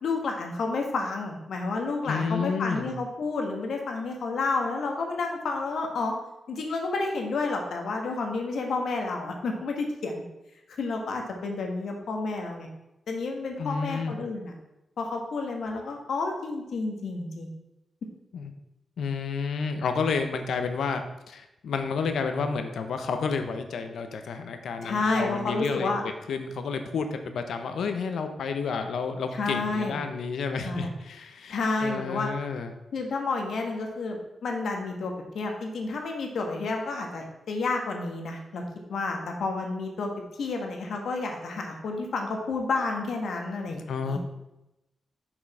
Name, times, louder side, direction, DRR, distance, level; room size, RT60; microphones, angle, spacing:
voice 1, 0.0-6.1 6.5-10.2 10.8-12.7 13.1-14.5 15.0-17.5 24.8-26.0 29.3-30.0 30.6-30.9 31.5-32.3 32.9-38.6 38.9-40.1 40.4-44.2, left 3 dB, 75° left, 2 dB, 1.3 m, -30 dB
voice 2, 2.0-2.9 13.6-14.1 18.3-18.5 19.0-32.7 43.7-44.2, left 5 dB, 90° left, 7 dB, 0.8 m, -31 dB
6.3 x 6.1 x 4.8 m, 0.94 s
wide cardioid pair, 150°, 0 cm